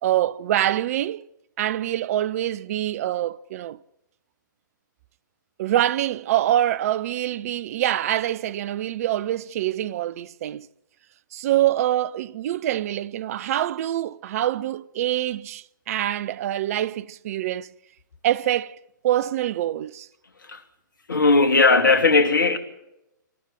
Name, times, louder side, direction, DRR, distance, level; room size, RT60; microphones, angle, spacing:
voice 1, 0.0-1.3 1.6-3.8 5.6-10.7 11.3-17.7 18.2-18.8 19.0-20.1, right 12 dB, 45° right, 0.7 m, -25 dB
voice 2, 21.1-22.6, left 3 dB, 75° left, 2.8 m, -17 dB
27.5 x 13.0 x 8.8 m
figure-of-eight pair, 115°, 11 cm